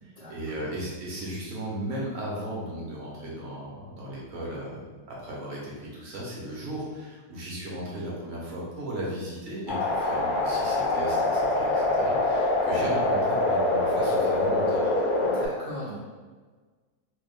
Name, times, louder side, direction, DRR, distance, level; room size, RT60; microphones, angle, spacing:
voice 1, 0.0-14.9, right 1 dB, 60° right, -5 dB, 1.3 m, -36 dB
sound 1, 9.7-15.5, left 2 dB, 55° left, 0.5 m, -24 dB
voice 2, 15.2-16.0, equal, 40° right, -9 dB, 0.5 m, -38 dB
3.2 x 2.4 x 3.5 m, 1.4 s
omnidirectional pair, 1.6 m